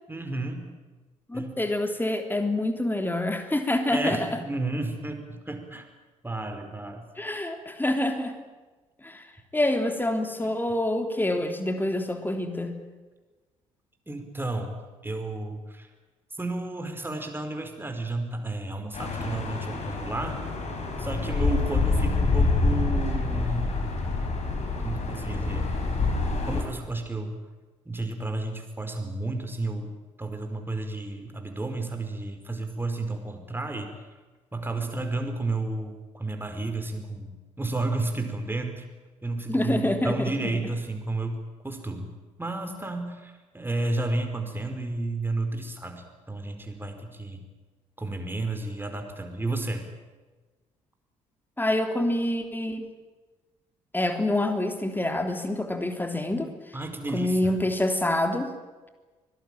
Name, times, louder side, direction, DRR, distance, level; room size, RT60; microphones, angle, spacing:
voice 1, 0.1-0.7 1.3-1.5 3.9-5.9 6.2-7.0 14.1-15.9 16.4-20.4 21.0-23.8 24.8-25.7 26.4-27.3 27.8-29.9 30.2-33.9 34.5-38.8 39.2-42.1 42.4-47.4 48.0-49.8 56.7-57.5, right 2 dB, 10° right, 5 dB, 4.9 m, -32 dB
voice 2, 1.3-4.3 7.2-8.4 9.0-9.2 9.5-12.7 39.5-40.5 51.6-52.9 53.9-56.5 57.1-58.5, left 1 dB, 10° left, 6 dB, 3.4 m, -26 dB
sound 1, 18.9-26.6, left 3 dB, 40° left, 5.7 m, -26 dB
24.0 x 18.5 x 9.1 m, 1.3 s
figure-of-eight pair, 45°, 17 cm